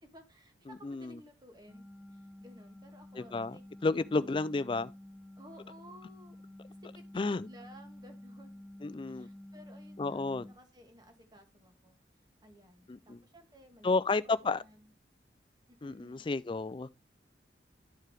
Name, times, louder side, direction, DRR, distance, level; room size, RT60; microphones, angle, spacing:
voice 1, 0.0-3.6 3.9-4.2 5.4-6.4 6.8-8.6 9.1-12.0 12.4-14.9 15.7-16.3, equal, 25° right, 1.4 m, -57 dB
voice 2, 0.7-1.2 3.2-3.6 3.8-4.9 7.1-7.5 8.8-9.3 10.0-10.5 12.9-13.2 13.8-14.6 15.8-16.9, left 3 dB, 30° left, 0.3 m, -32 dB
sound 1, 1.7-10.5, left 1 dB, ahead, 0.8 m, -51 dB
11.5 x 4.7 x 3.2 m
head